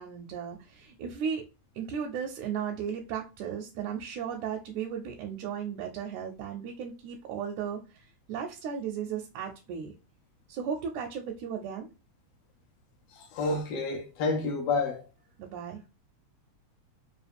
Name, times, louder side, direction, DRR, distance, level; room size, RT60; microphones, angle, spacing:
voice 1, 0.0-1.4 1.8-8.0 8.3-9.9 10.5-11.9 15.4-15.8, right 7 dB, 85° right, 2.0 m, -35 dB
voice 2, 13.2-15.1, left 3 dB, 80° left, 1.3 m, -29 dB
4.7 x 2.5 x 3.3 m
omnidirectional pair, 3.3 m